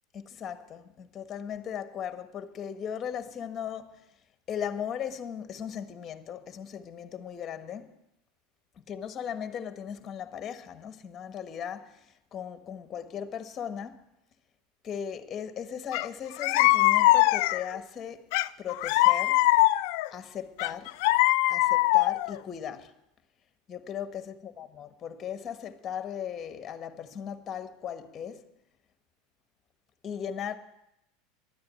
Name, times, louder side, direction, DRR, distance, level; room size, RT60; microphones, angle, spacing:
voice 1, 0.1-4.1 4.5-7.9 8.8-14.0 14.8-18.3 18.6-19.5 20.1-21.0 21.5-22.9 23.7-28.5 30.0-30.5, left 8 dB, 30° left, 1.3 m, -37 dB
sound 1, 15.9-16.1 16.4-17.8 18.3-20.1 20.6-22.4, left 18 dB, 65° left, 0.4 m, -22 dB
11.5 x 9.5 x 8.9 m
supercardioid pair, 110°, 0 cm